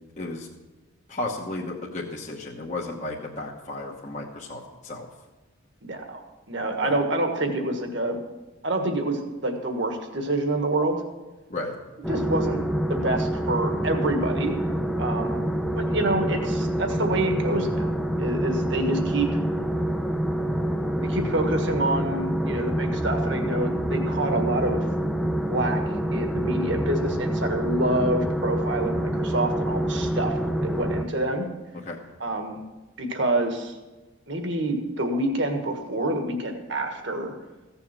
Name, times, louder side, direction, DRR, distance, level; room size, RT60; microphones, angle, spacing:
voice 1, 0.2-0.5 1.1-5.1 6.8-7.0 11.5-11.7 31.8-32.0, left 2 dB, 35° left, -2 dB, 1.1 m, -33 dB
voice 2, 5.8-8.2 8.6-11.0 12.1-12.6 12.9-14.6 15.0-15.4 15.8-17.9 18.2-19.4 21.0-24.9 25.5-25.8 26.1-31.5 32.2-32.6 33.0-33.8 34.3-37.3, right 1 dB, 55° right, 4 dB, 1.6 m, -27 dB
sound 1, 12.0-31.0, right 1 dB, ahead, 0.7 m, -26 dB
15.5 x 7.2 x 6.0 m, 1.1 s
head